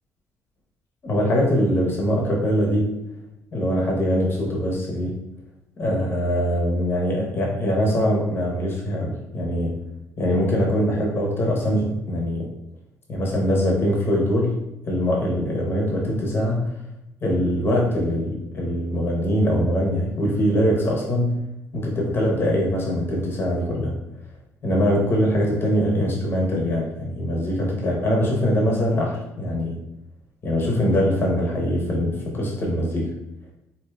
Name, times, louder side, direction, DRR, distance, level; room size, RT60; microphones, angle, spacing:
voice 1, 1.0-2.9 3.5-5.1 5.8-9.8 10.2-12.5 13.1-14.6 14.9-16.7 17.2-21.4 21.7-24.0 24.6-29.8 30.4-33.1, equal, 35° left, -2 dB, 0.8 m, -22 dB
4.4 x 2.6 x 2.2 m, 0.90 s
cardioid pair, 125°, 6 cm